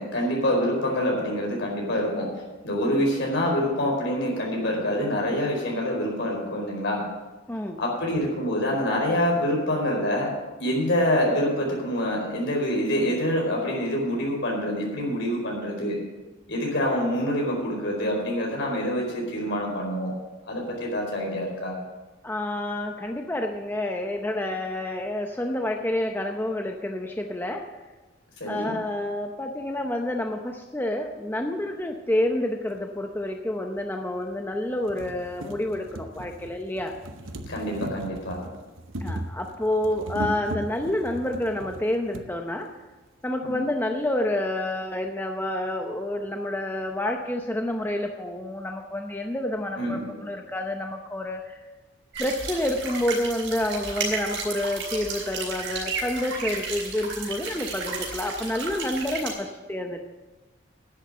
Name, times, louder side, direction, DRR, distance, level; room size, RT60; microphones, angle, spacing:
voice 1, 0.0-2.3 2.6-7.0 7.8-10.3 10.6-16.0 16.5-20.1 20.5-21.8 28.4-28.7 37.5-38.4 43.4-43.7 49.7-50.2, equal, 65° left, -1 dB, 4.6 m, -26 dB
voice 2, 7.5-7.8 22.2-27.6 28.5-36.9 39.0-42.7 43.2-51.6 52.2-60.0, left 1 dB, 10° left, 3 dB, 0.7 m, -28 dB
sound 1, 32.7-32.8 33.8-33.9 34.3-34.4 34.7-42.3 43.2-43.3 43.5-43.6, right 1 dB, 85° right, 0.9 m, -37 dB
sound 2, 52.1-59.3, right 4 dB, 65° right, 4.0 m, -33 dB
10.5 x 7.9 x 7.9 m, 1.2 s
head